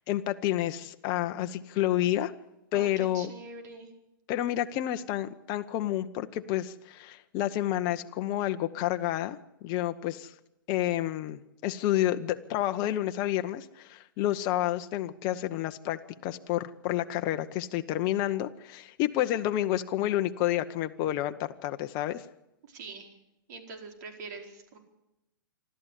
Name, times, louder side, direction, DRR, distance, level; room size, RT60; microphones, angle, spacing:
voice 1, 0.1-2.3 2.7-3.3 4.3-9.4 9.6-10.3 10.7-22.2, left 13 dB, 35° left, 8 dB, 0.9 m, -29 dB
voice 2, 2.7-3.9 22.6-23.1 23.5-24.8, right 3 dB, 50° right, 2 dB, 4.6 m, -44 dB
26.5 x 12.5 x 8.3 m, 0.93 s
hypercardioid pair, 125°, 11 cm